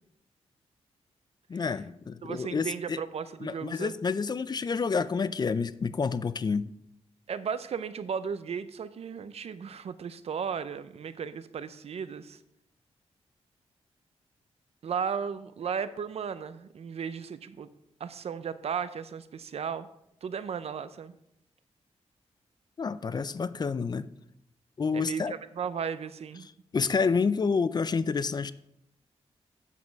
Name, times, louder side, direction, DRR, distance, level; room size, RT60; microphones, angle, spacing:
voice 1, 1.5-3.0 3.4-6.7 22.8-24.1 24.8-25.3 26.4-28.5, left 5 dB, 40° left, 16 dB, 0.4 m, -29 dB
voice 2, 2.2-3.9 7.3-12.4 14.8-17.7 18.0-19.9 20.2-21.1 24.9-26.5, right 7 dB, 65° right, 14 dB, 0.6 m, -35 dB
8.3 x 7.4 x 4.6 m, 0.76 s
wide cardioid pair, 100°, 11 cm